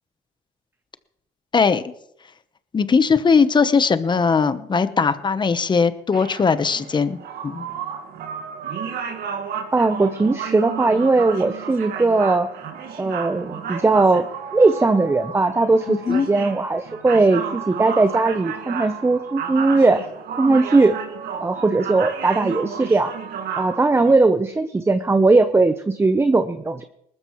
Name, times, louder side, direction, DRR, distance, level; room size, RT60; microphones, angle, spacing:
voice 1, 1.5-1.8 2.7-7.7 15.9-16.3, left 5 dB, 25° left, 12 dB, 0.9 m, -19 dB
sound 1, 6.1-24.1, right 7 dB, 65° right, 1.8 m, -32 dB
voice 2, 9.7-12.5 13.0-14.2 14.5-20.1 20.4-21.0 21.4-23.1 23.6-26.8, right 3 dB, 15° right, 10 dB, 0.7 m, -18 dB
20.0 x 13.0 x 3.1 m, 0.75 s
cardioid pair, 110°, 17 cm